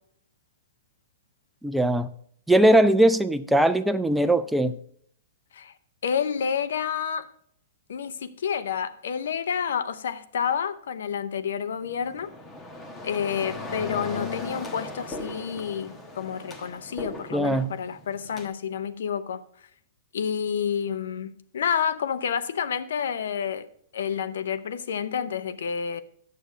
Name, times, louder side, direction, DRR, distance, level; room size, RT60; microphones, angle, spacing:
voice 1, 1.6-2.1 2.5-4.8 17.3-17.7, right 1 dB, 5° right, 0.4 m, -20 dB
voice 2, 6.0-7.3 7.9-12.3 13.0-19.4 20.1-23.7 23.9-26.0, left 7 dB, 75° left, 0.6 m, -29 dB
sound 1, 11.8-18.5, left 2 dB, 15° left, 1.2 m, -38 dB
9.1 x 6.7 x 5.1 m
hypercardioid pair, 125°, 0 cm